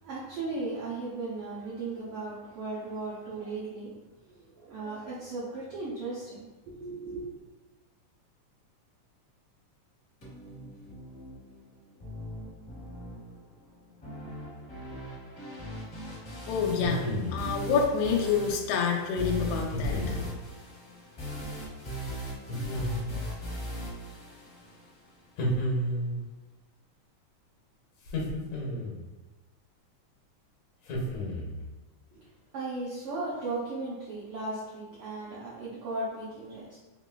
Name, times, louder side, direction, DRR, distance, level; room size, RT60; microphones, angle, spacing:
voice 1, 0.0-3.9 4.3-6.5 6.7-7.4 32.1-32.2 32.5-36.8, right 2 dB, 90° right, -7 dB, 1.2 m, -36 dB
sound 1, 10.2-25.2, equal, 45° left, 0.9 m, -40 dB
voice 2, 16.5-20.2, left 6 dB, 90° left, 1 dB, 1.4 m, -28 dB
sound 2, 16.7-17.5 19.7-20.3 22.5-23.3 25.4-26.2 28.1-29.0 30.9-31.6, equal, 70° left, 1.8 m, -31 dB
5.3 x 3.1 x 2.2 m, 1.2 s
omnidirectional pair, 3.5 m